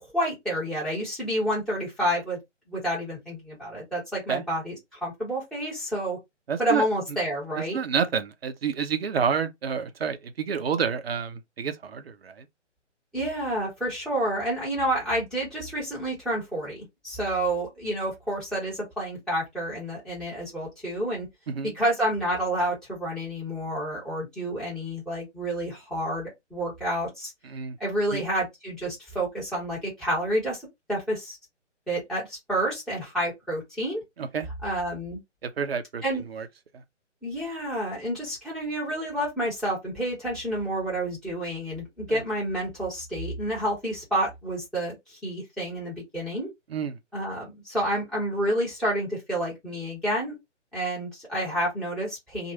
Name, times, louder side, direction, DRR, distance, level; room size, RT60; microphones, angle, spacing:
voice 1, 0.1-2.4 2.7-4.7 5.0-6.2 6.6-7.8 13.1-21.3 21.7-27.3 27.8-30.6 30.9-31.4 31.9-34.0 34.6-35.2 36.0-36.2 37.2-46.5 47.1-50.3 50.7-52.5, right 1 dB, ahead, 1.5 m, -29 dB
voice 2, 6.5-7.2 7.5-12.5 21.5-21.8 27.4-27.8 28.1-28.2 34.2-34.5 35.4-36.5 36.7-36.8 42.1-42.2 46.7-47.0, right 6 dB, 55° right, 0.7 m, -29 dB
3.0 x 2.5 x 2.8 m
figure-of-eight pair, 140°, 36 cm